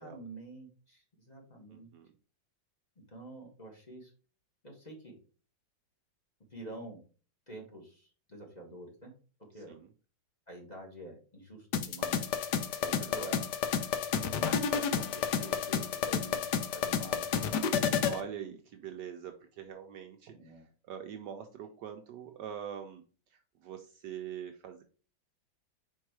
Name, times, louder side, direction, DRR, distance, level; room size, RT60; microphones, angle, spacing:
voice 1, 0.0-1.9 3.1-4.1 4.6-5.2 6.5-7.0 7.5-9.1 9.5-9.7 10.5-12.2 13.1-13.4 14.3-16.5 16.7-17.7 20.3-20.7, right 1 dB, 20° left, -1 dB, 1.6 m, -47 dB
voice 2, 1.7-2.1 9.7-9.9 12.8-13.3 18.0-20.5 20.8-23.0 23.3-24.8, right 8 dB, 70° right, 5 dB, 1.1 m, -44 dB
sound 1, 11.7-18.2, left 7 dB, 70° left, 1.1 m, -31 dB
4.7 x 4.5 x 4.6 m, 0.37 s
omnidirectional pair, 2.1 m